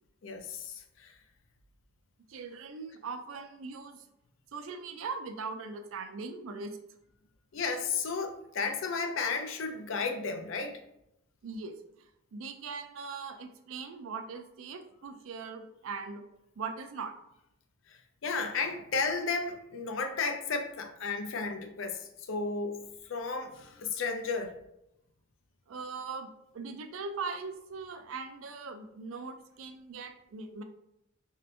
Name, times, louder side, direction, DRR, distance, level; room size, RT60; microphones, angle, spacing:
voice 1, 0.2-1.1 7.5-10.8 17.9-24.5, left 4 dB, 70° left, 0.5 m, -33 dB
voice 2, 2.3-4.0 4.5-6.8 11.4-16.2 16.6-17.1 25.7-26.3 26.5-30.6, right 4 dB, 75° right, 0.4 m, -40 dB
2.7 x 2.5 x 3.3 m
head